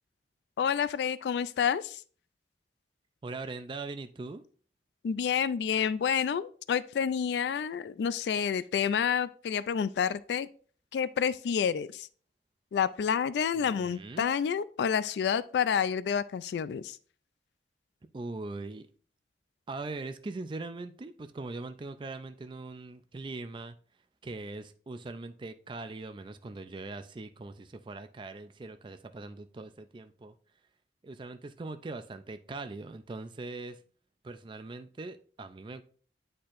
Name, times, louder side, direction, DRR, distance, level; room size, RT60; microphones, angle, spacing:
voice 1, 0.6-2.0 5.0-10.5 10.9-12.1 12.7-17.0, left 7 dB, 70° left, 0.3 m, -29 dB
voice 2, 3.2-4.4 13.6-14.3 18.1-18.9 19.7-23.8 24.2-30.3 31.0-33.8 34.2-35.8, right 3 dB, 30° right, 0.4 m, -41 dB
10.0 x 4.4 x 2.5 m
head